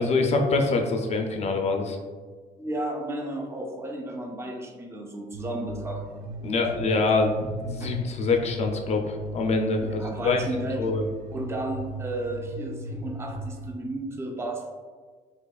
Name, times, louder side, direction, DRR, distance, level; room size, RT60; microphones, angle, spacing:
voice 1, 0.0-2.0 6.4-10.4 10.8-11.0, left 3 dB, 40° left, 3 dB, 0.4 m, -25 dB
voice 2, 2.6-6.2 6.9-7.1 7.8-8.1 9.8-10.9 11.3-14.7, right 1 dB, 15° right, 1 dB, 0.5 m, -33 dB
sound 1, 5.3-13.7, equal, 65° right, 0.6 m, -37 dB
4.0 x 2.8 x 2.3 m, 1.5 s
cardioid pair, 110°, 17 cm